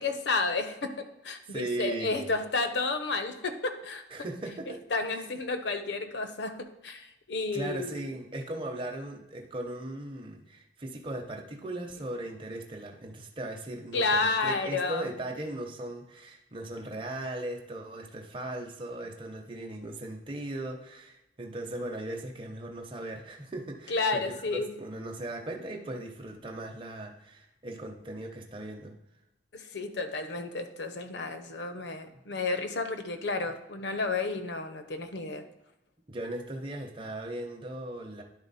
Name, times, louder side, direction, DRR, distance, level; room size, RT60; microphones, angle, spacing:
voice 1, 0.0-4.0 4.9-8.0 13.9-15.1 23.9-24.7 29.5-35.4, left 3 dB, 70° left, 8 dB, 0.8 m, -31 dB
voice 2, 1.5-2.4 4.1-4.8 5.1-5.3 7.5-24.2 24.5-29.0 36.1-38.2, right 1 dB, 25° right, 1 dB, 0.8 m, -38 dB
10.5 x 4.0 x 4.1 m, 0.94 s
head